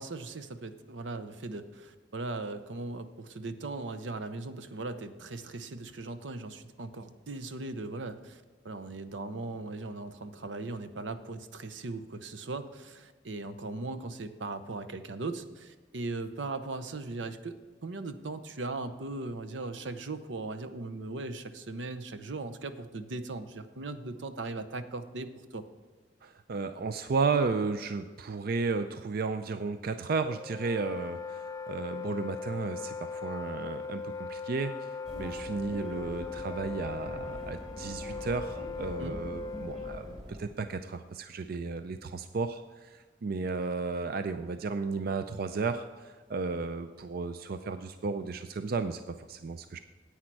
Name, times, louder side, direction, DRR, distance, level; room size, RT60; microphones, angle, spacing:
voice 1, 0.0-25.6 39.0-39.2, right 2 dB, 80° right, 10 dB, 0.8 m, -39 dB
voice 2, 26.2-34.9 35.2-49.8, right 4 dB, 55° right, 10 dB, 0.4 m, -33 dB
Wind instrument woodwind instrument, 30.3-40.2, left 5 dB, 20° left, 0.3 m, -39 dB
sound 1, 35.1-40.5, right 1 dB, 35° right, 3.3 m, -43 dB
10.0 x 8.7 x 4.6 m, 1.3 s
head